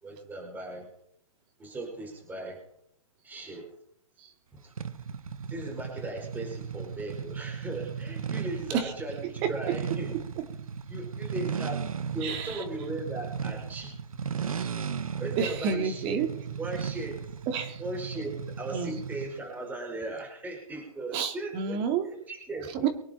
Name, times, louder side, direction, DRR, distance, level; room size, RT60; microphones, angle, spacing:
voice 1, 0.0-0.9 1.6-2.6 3.2-3.7 4.5-4.7 5.5-10.1 10.9-11.9 12.1-13.9 15.2-16.2 16.6-17.2 17.8-21.8 22.1-22.9, right 2 dB, 10° right, 0 dB, 5.0 m, -37 dB
sound 1, 4.8-19.4, right 6 dB, 80° right, 1.6 m, -36 dB
voice 2, 9.2-9.8 12.2-12.6 14.6-14.7 15.4-16.3 17.5-17.8 18.7-19.0 21.1-22.1 22.7-22.9, right 7 dB, 30° right, 6 dB, 2.7 m, -30 dB
24.0 x 10.0 x 4.4 m, 0.71 s
hypercardioid pair, 135°, 18 cm